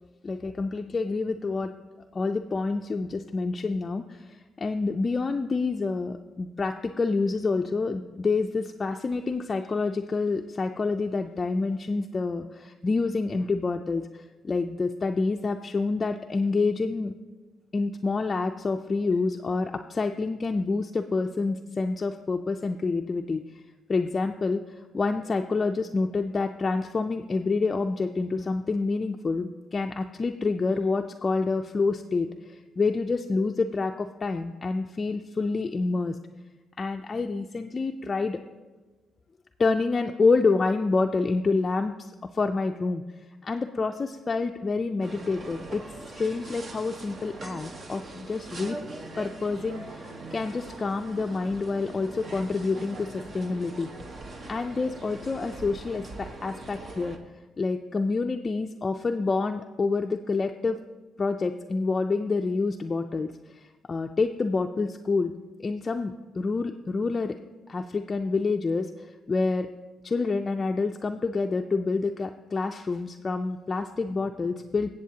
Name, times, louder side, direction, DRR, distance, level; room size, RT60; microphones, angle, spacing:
voice 1, 0.2-1.7 2.1-17.1 17.7-23.4 23.9-24.6 24.9-36.2 36.8-38.4 39.6-43.0 43.4-45.8 46.2-48.8 49.2-53.9 54.5-57.2 57.6-60.8 61.2-65.3 65.6-67.4 67.7-69.7 70.0-74.9, left 3 dB, 30° left, 4 dB, 0.4 m, -28 dB
sound 1, 45.0-57.2, right 2 dB, 50° right, 1.2 m, -42 dB
21.0 x 7.7 x 2.8 m, 1.3 s
cardioid pair, 90°, 0 cm